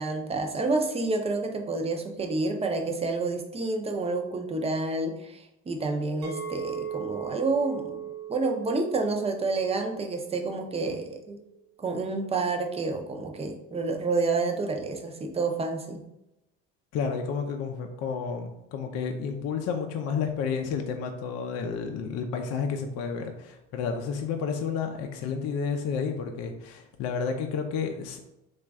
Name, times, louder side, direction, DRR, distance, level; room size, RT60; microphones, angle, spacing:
voice 1, 0.0-8.0 8.3-11.4 11.8-16.0, right 3 dB, 20° right, 4 dB, 0.6 m, -29 dB
Chink clink, 6.2-11.4, right 9 dB, 75° right, 0.8 m, -39 dB
voice 2, 16.9-28.3, left 6 dB, 55° left, 4 dB, 0.5 m, -31 dB
3.1 x 2.4 x 3.5 m, 0.88 s
supercardioid pair, 80°, 30 cm